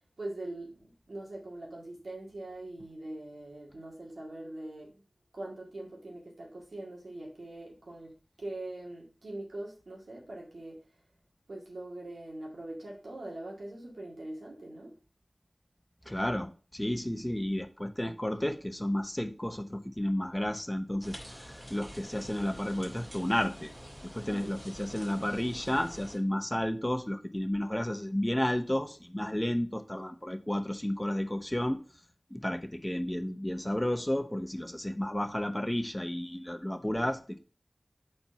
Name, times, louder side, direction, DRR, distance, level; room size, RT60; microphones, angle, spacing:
voice 1, 0.2-5.0 5.3-8.1 8.4-10.8 11.5-15.0 24.2-24.5, right 1 dB, 90° right, 2.0 m, -42 dB
voice 2, 16.1-23.7 24.1-31.8 32.3-37.4, left 1 dB, 15° left, 0.8 m, -32 dB
sound 1, 21.0-26.2, equal, 15° right, 2.3 m, -47 dB
4.4 x 4.3 x 5.5 m
wide cardioid pair, 50°, 0 cm